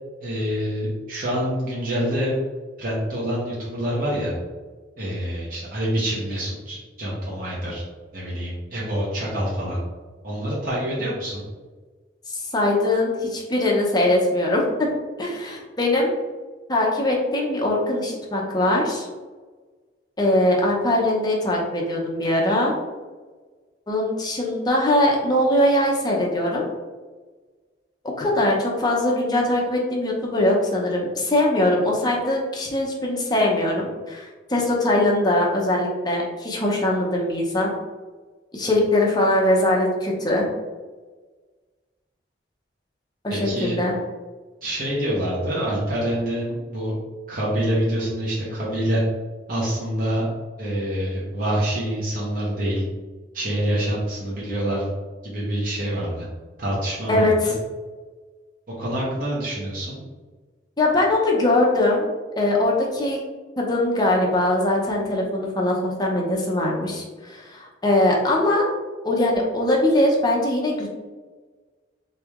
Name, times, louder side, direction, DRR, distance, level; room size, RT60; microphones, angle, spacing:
voice 1, 0.2-2.3 2.8-4.3 5.0-7.8 8.1-9.8 10.2-11.4 43.3-43.8 44.6-46.9 47.3-49.0 49.5-50.3 50.6-52.8 53.3-54.9 55.2-56.3 56.6-57.5 58.8-60.0, equal, 50° right, -7 dB, 1.1 m, -26 dB
voice 2, 12.3-14.9 15.2-16.1 16.7-19.1 20.2-22.7 23.9-26.6 28.2-37.7 38.5-40.5 43.2-43.9 57.1-57.5 60.8-62.0 62.4-63.2 63.6-68.7 69.0-70.9, left 1 dB, 25° left, -2 dB, 0.8 m, -21 dB
3.8 x 3.3 x 3.6 m, 1.3 s
head